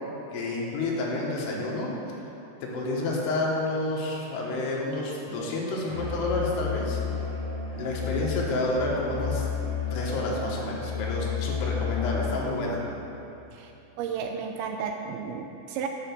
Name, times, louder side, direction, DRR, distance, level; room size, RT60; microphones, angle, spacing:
voice 1, 0.3-1.9 2.6-7.0 7.8-9.5 9.9-12.8, left 2 dB, 75° left, -3 dB, 3.3 m, -29 dB
Musical instrument, 5.9-12.7, left 6 dB, 50° right, 1.7 m, -31 dB
voice 2, 14.0-15.9, right 6 dB, 85° right, 4 dB, 2.2 m, -33 dB
9.9 x 5.0 x 7.0 m, 3.0 s
omnidirectional pair, 4.9 m